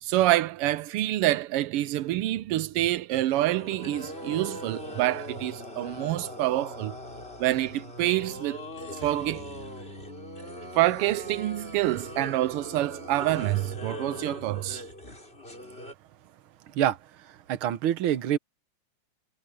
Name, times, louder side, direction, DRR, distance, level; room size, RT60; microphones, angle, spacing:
voice 1, 0.0-7.0 7.4-8.7 8.9-9.5 10.8-14.8, right 15 dB, 85° right, 1.2 m, -27 dB
sound 1, 3.6-15.9, equal, 20° left, 5.3 m, -40 dB
voice 2, 17.5-18.4, right 11 dB, 60° right, 1.5 m, -25 dB
omnidirectional pair, 3.3 m